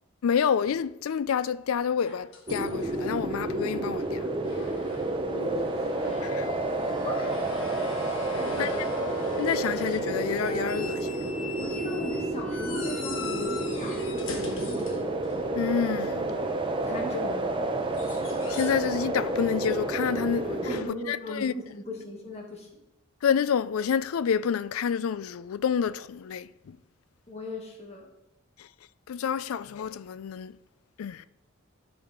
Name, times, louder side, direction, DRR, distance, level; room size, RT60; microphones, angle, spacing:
voice 1, 0.2-4.2 6.2-6.5 8.6-8.7 9.4-11.2 15.5-16.4 17.1-17.2 18.5-21.5 23.2-26.8 28.6-28.7 29.1-30.6 31.0-31.3, left 7 dB, 85° left, 0.4 m, -28 dB
sound 1, 2.0-3.3 4.0-4.1 4.4-5.2 5.5-15.8 17.8-18.9 19.2-19.5 21.3-21.4, left 3 dB, 65° left, 1.4 m, -41 dB
sound 2, 2.5-20.8, right 2 dB, 25° right, 0.7 m, -30 dB
voice 2, 5.3-6.3 7.0-7.3 8.3-8.8 11.6-15.1 16.6-17.6 20.6-22.7 27.3-28.1, left 1 dB, 30° left, 1.6 m, -38 dB
12.5 x 4.2 x 5.0 m
head